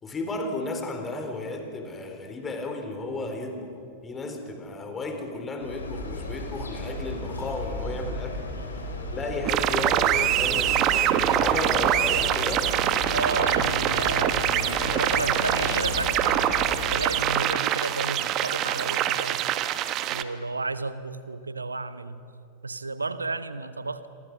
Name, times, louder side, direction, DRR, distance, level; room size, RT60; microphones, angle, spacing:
voice 1, 0.0-3.7 4.0-8.4 9.1-12.7, left 2 dB, 20° left, 5 dB, 4.1 m, -33 dB
sound 1, 5.6-17.1, left 2 dB, 75° left, 3.9 m, -34 dB
sound 2, 9.5-20.2, right 12 dB, 35° right, 1.1 m, -24 dB
voice 2, 13.1-16.6 16.9-19.5 20.1-22.2 22.6-24.1, right 3 dB, 80° right, 13 dB, 1.1 m, -32 dB
27.5 x 24.0 x 6.2 m, 2.5 s
figure-of-eight pair, 90°, 0 cm